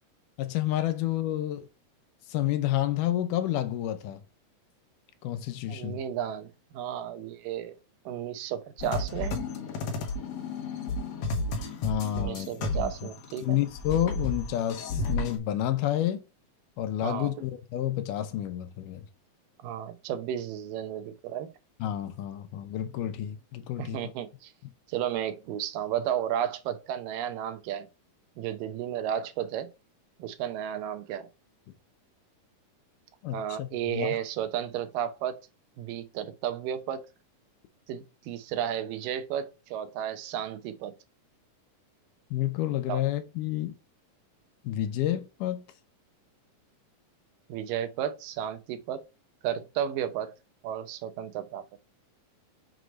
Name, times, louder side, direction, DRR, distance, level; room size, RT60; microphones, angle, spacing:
voice 1, 0.4-1.7 2.3-4.2 5.2-6.0 11.8-13.1 13.4-16.2 16.8-19.1 21.8-24.0 33.2-34.2 42.3-43.7 44.6-45.6, left 12 dB, 80° left, 2.2 m, -30 dB
voice 2, 5.7-7.8 8.1-9.4 12.1-13.6 17.0-17.3 19.6-21.5 23.8-24.5 24.9-27.9 28.4-29.7 30.2-31.3 33.3-35.5 35.8-37.1 37.9-40.9 42.9-43.0 47.5-49.1 49.4-50.3 50.6-51.6, right 10 dB, 90° right, 2.4 m, -33 dB
sound 1, 8.8-13.4 13.7-15.4, left 2 dB, 65° left, 2.0 m, -32 dB
6.6 x 3.1 x 5.0 m
omnidirectional pair, 3.8 m